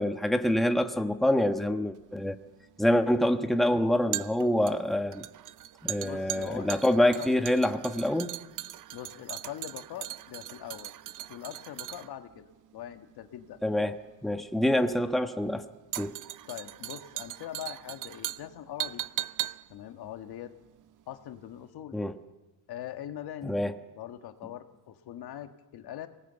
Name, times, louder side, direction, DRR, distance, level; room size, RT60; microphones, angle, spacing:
voice 1, 0.0-2.4 2.8-5.2 5.8-8.3 13.6-14.0 14.2-15.6 16.0-16.1 21.9-22.1 23.4-23.8, left 1 dB, ahead, 6 dB, 1.3 m, -26 dB
sound 1, 2.0-21.2 21.5-21.6, right 13 dB, 50° right, 0.7 m, -39 dB
voice 2, 6.0-7.3 8.9-10.9 11.3-13.6 14.6-14.9 16.5-19.0 19.7-20.5 21.1-22.0 22.7-23.5 23.9-26.1, left 11 dB, 65° left, 7 dB, 1.8 m, -42 dB
25.5 x 19.0 x 8.1 m, 1.1 s
cardioid pair, 95°, 40 cm